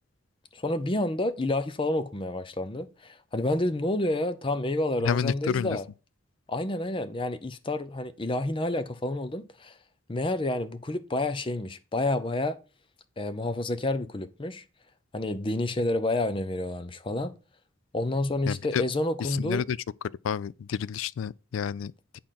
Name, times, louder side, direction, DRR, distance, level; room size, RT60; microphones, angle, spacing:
voice 1, 0.5-5.8 6.5-9.8 10.1-12.6 13.2-14.6 15.1-17.3 17.9-19.6, left 1 dB, 25° left, 0.6 m, -29 dB
voice 2, 5.0-5.8 18.5-18.8 19.2-19.8 20.0-22.2, left 7 dB, 90° left, 0.3 m, -30 dB
8.7 x 3.8 x 5.8 m
head